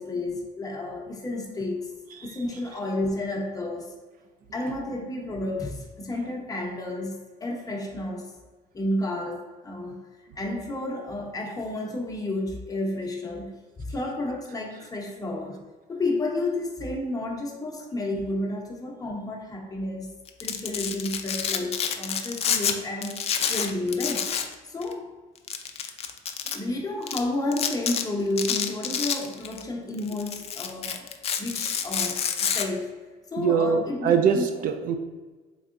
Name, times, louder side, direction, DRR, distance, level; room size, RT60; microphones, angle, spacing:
voice 1, 0.0-2.0 2.2-3.9 4.5-8.3 8.7-10.0 10.4-13.5 13.8-15.6 15.9-20.1 20.4-24.3 24.6-25.1 26.5-31.1 31.4-33.0 33.3-34.5, left 2 dB, 20° left, 0 dB, 0.8 m, -31 dB
voice 2, 2.1-2.4 18.1-18.3 33.4-35.0, right 7 dB, 55° right, 6 dB, 0.4 m, -24 dB
Domestic sounds home sounds, 20.3-22.7 23.0-24.5 24.8-24.9 25.5-26.6 27.1-27.2 27.5-28.0 28.4-29.6 30.0-32.6, left 7 dB, 40° left, 0.4 m, -28 dB
3.7 x 3.3 x 2.5 m, 1.3 s
cardioid pair, 110°, 17 cm